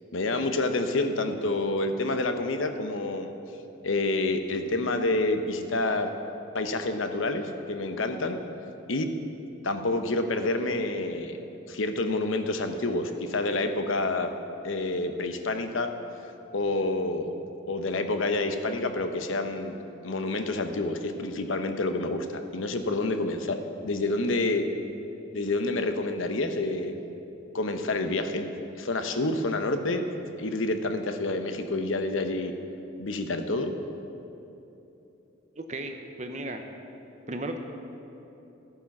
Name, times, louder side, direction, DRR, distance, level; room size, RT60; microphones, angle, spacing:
voice 1, 0.1-3.3 3.8-6.1 6.5-8.4 8.9-9.1 9.6-11.4 11.7-14.3 14.6-15.9 16.5-17.3 17.7-19.8 20.0-24.7 25.3-26.9 27.5-28.5 28.8-30.0 30.4-32.5 33.0-33.8, left 2 dB, 80° left, 7 dB, 0.9 m, -28 dB
voice 2, 35.6-36.6 37.3-37.6, right 1 dB, 35° right, 5 dB, 0.8 m, -35 dB
13.5 x 9.0 x 5.9 m, 3.0 s
head